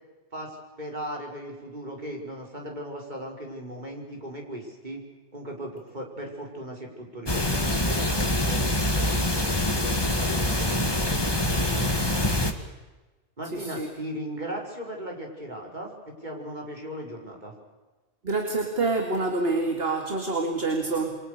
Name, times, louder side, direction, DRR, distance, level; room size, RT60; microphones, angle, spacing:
voice 1, 0.3-5.0 5.3-12.2 13.4-15.9 16.2-17.5, right 1 dB, 40° right, 1 dB, 5.4 m, -37 dB
sound 1, 7.3-12.5, left 1 dB, 20° left, 2.0 m, -25 dB
voice 2, 13.5-13.9 18.2-21.2, right 3 dB, 55° right, 3 dB, 2.6 m, -27 dB
28.5 x 24.0 x 6.7 m, 1.2 s
omnidirectional pair, 1.2 m